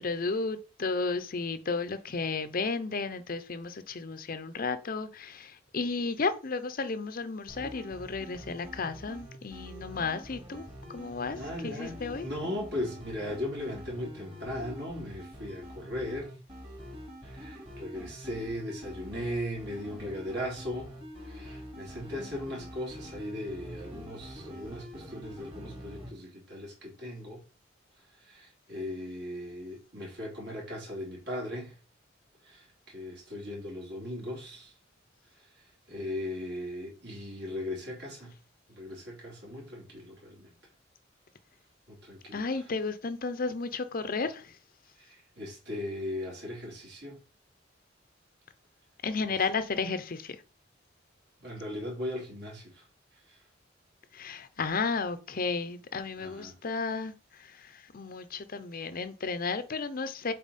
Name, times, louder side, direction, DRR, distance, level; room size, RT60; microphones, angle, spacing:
voice 1, 0.0-12.3 42.3-44.6 49.0-50.4 54.1-60.3, left 4 dB, 45° left, 0.6 m, -33 dB
sound 1, 7.5-26.1, equal, 30° right, 2.3 m, -45 dB
voice 2, 11.3-16.3 17.2-20.9 21.2-27.4 28.2-31.8 32.4-34.7 35.9-38.3 38.7-40.5 41.9-42.4 45.0-47.2 51.4-52.8 53.3-53.4 56.2-56.5, left 1 dB, 60° right, 3.1 m, -38 dB
7.2 x 4.1 x 4.2 m
head